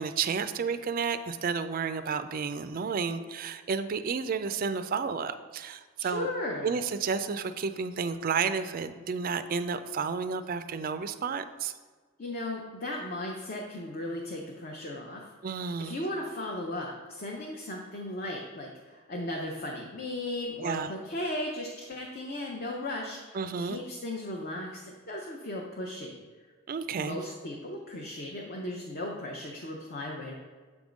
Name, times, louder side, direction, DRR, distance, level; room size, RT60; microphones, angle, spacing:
voice 1, 0.0-6.3 6.6-11.7 15.4-16.0 20.6-20.9 23.3-23.8 26.7-27.2, right 5 dB, 40° right, 11 dB, 0.3 m, -31 dB
voice 2, 6.0-6.7 12.2-15.2 15.8-26.2 27.0-30.3, left 1 dB, 45° left, -1 dB, 0.6 m, -36 dB
7.9 x 3.5 x 5.0 m, 1.5 s
head